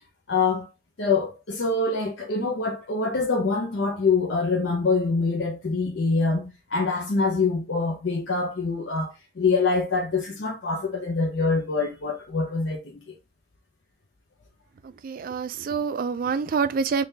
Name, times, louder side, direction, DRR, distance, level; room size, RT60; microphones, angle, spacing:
voice 1, 0.3-0.7 1.0-13.2, left 4 dB, 70° left, 0.7 m, -25 dB
voice 2, 15.0-17.0, right 5 dB, 50° right, 0.3 m, -26 dB
3.8 x 2.7 x 3.2 m
head